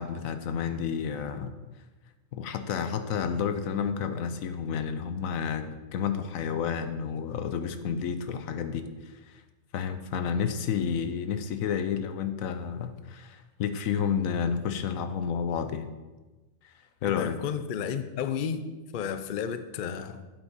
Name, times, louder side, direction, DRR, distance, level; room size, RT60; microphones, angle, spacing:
voice 1, 0.0-1.5 2.3-8.9 9.3-9.4 9.7-15.9 17.0-17.3, left 7 dB, 90° left, 9 dB, 1.1 m, -30 dB
voice 2, 17.1-18.7 18.9-20.2, left 7 dB, 55° left, 10 dB, 0.6 m, -32 dB
8.3 x 8.1 x 4.1 m, 1.2 s
omnidirectional pair, 1.4 m